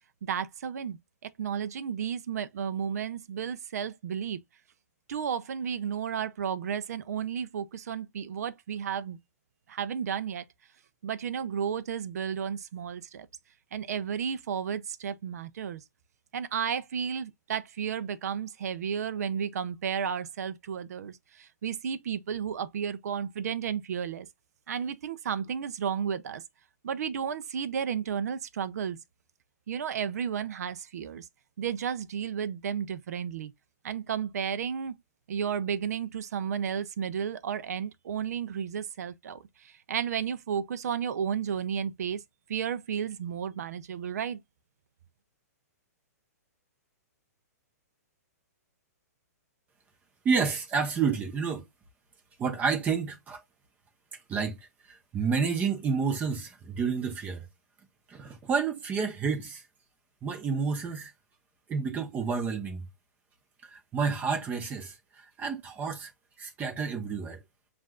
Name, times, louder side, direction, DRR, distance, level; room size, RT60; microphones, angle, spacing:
voice 1, 0.2-1.0 1.4-4.4 5.1-9.2 9.7-10.4 11.0-13.3 13.7-15.8 16.3-24.3 24.7-26.4 26.8-29.0 29.7-31.3 31.6-33.5 33.8-34.9 35.3-42.2 42.5-44.4, right 7 dB, 70° right, 0.6 m, -33 dB
voice 2, 50.2-51.6 52.4-53.4 54.3-54.6 54.9-57.5 58.1-59.6 60.2-61.1 61.7-62.8 63.6-64.9 65.4-66.1 66.4-67.4, right 5 dB, 20° right, 1.0 m, -29 dB
7.3 x 2.6 x 2.4 m
hypercardioid pair, 145°, 9 cm